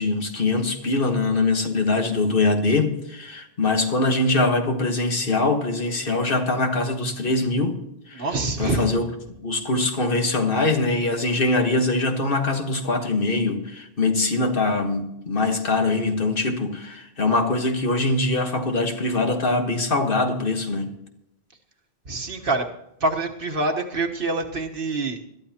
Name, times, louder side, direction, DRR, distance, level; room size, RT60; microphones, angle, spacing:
voice 1, 0.0-7.8 8.1-8.3 8.6-9.1 9.4-20.9, left 2 dB, 60° left, 1.6 m, -23 dB
voice 2, 8.1-8.9 22.1-22.7 23.0-25.2, right 2 dB, 60° right, 1.5 m, -25 dB
21.0 x 12.5 x 2.9 m
omnidirectional pair, 1.1 m